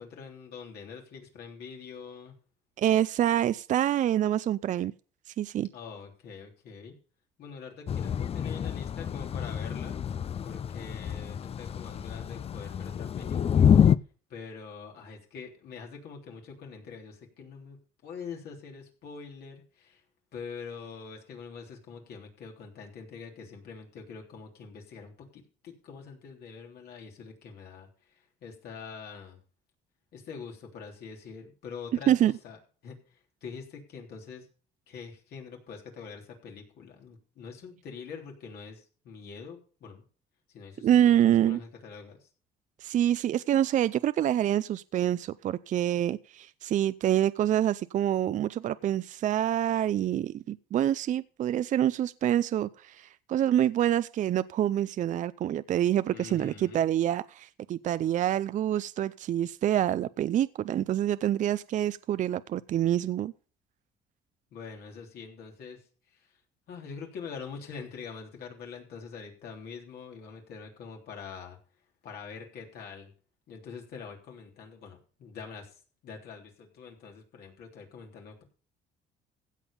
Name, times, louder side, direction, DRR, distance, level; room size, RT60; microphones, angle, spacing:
voice 1, 0.0-2.3 5.7-7.0 7.4-10.0 10.4-13.8 14.3-17.8 18.0-20.0 20.3-29.4 30.1-32.6 32.8-34.5 34.9-40.0 40.5-42.3 56.1-56.9 64.5-66.4 66.7-71.6 72.0-73.1 73.5-78.4, left 5 dB, 70° left, 3.4 m, -44 dB
voice 2, 2.8-4.9 5.4-5.7 32.1-32.3 40.8-41.6 42.8-63.3, right 11 dB, 50° right, 0.5 m, -26 dB
Thunder / Rain, 7.9-14.0, left 8 dB, 35° left, 0.5 m, -27 dB
16.0 x 5.5 x 6.8 m
cardioid pair, 110°, 17 cm